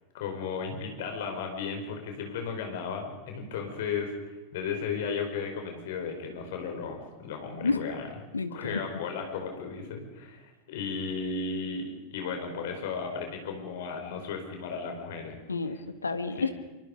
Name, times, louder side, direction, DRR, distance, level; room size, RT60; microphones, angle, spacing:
voice 1, 0.1-8.1 8.5-11.9 12.1-15.4 16.4-16.5, left 5 dB, 55° left, 4 dB, 5.3 m, -35 dB
voice 2, 8.3-8.8 15.5-16.6, left 4 dB, 75° left, 10 dB, 1.6 m, -30 dB
25.5 x 24.0 x 5.4 m, 1.2 s
figure-of-eight pair, 90°, 0 cm